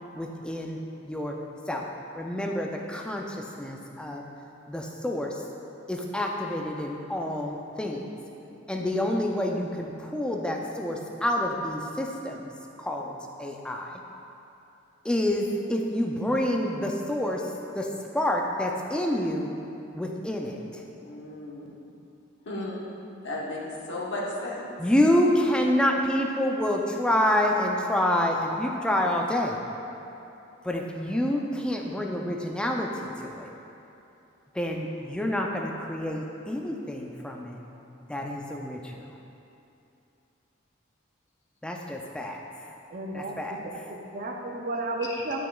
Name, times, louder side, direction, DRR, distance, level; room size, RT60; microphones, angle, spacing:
voice 1, 0.1-0.8 1.1-1.4 1.7-1.8 2.2-4.2 4.7-5.4 5.9-8.0 8.7-12.5 12.8-14.0 15.0-17.4 17.7-17.9 18.1-19.5 19.9-20.6 24.8-29.6 30.6-33.5 34.5-37.6 38.1-39.0 41.6-42.4 43.1-43.6, left 1 dB, 5° left, 0 dB, 0.4 m, -28 dB
voice 2, 8.5-8.9 21.0-21.7 22.5-22.7 23.2-24.7 45.0-45.2, left 1 dB, 60° left, -4 dB, 1.0 m, -35 dB
voice 3, 42.9-43.3 43.6-45.5, right 2 dB, 45° right, 1 dB, 0.6 m, -33 dB
8.1 x 6.0 x 2.3 m, 2.8 s
head